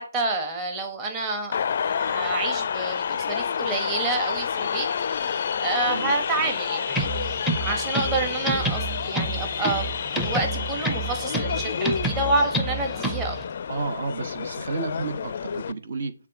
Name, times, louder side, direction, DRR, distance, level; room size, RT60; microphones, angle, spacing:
voice 1, 0.0-1.6 1.8-4.9 5.2-7.1 7.6-9.9 10.2-13.4, right 2 dB, 20° right, 3 dB, 1.4 m, -28 dB
sound 1, 1.5-15.7, left 7 dB, 50° left, 0.4 m, -29 dB
voice 2, 5.8-6.5 13.7-16.1, right 4 dB, 55° right, 9 dB, 1.1 m, -32 dB
sound 2, 6.9-13.4, right 2 dB, 5° right, 0.7 m, -29 dB
7.4 x 3.7 x 5.3 m, 0.36 s
figure-of-eight pair, 150°, 0 cm